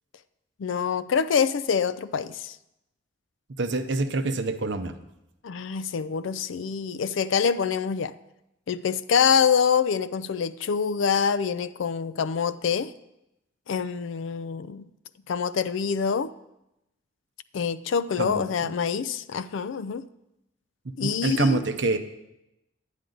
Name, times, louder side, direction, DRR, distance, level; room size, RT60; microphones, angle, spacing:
voice 1, 0.6-2.6 5.4-8.1 8.7-12.9 13.7-14.9 15.3-16.3 17.5-20.1 21.0-21.6, left 6 dB, 75° left, 0.4 m, -25 dB
voice 2, 3.6-4.9 18.2-18.7 20.8-22.0, right 3 dB, 60° right, 0.7 m, -26 dB
10.5 x 9.1 x 3.9 m
head